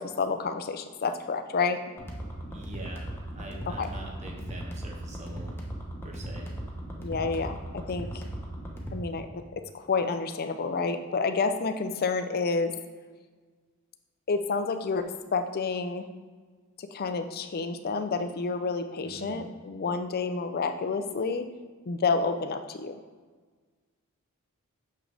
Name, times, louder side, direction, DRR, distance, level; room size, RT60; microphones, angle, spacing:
voice 1, 0.0-1.8 3.8-3.9 7.0-8.2 8.9-9.4 9.7-12.7 14.3-16.1 16.8-21.5 21.9-23.0, left 4 dB, 45° left, 8 dB, 0.5 m, -29 dB
sound 1, 2.0-9.0, right 1 dB, 10° left, 1.0 m, -38 dB
voice 2, 2.5-5.6 6.0-6.5 19.0-19.5, right 1 dB, 30° right, 0 dB, 1.1 m, -44 dB
6.5 x 6.1 x 3.4 m, 1.5 s
head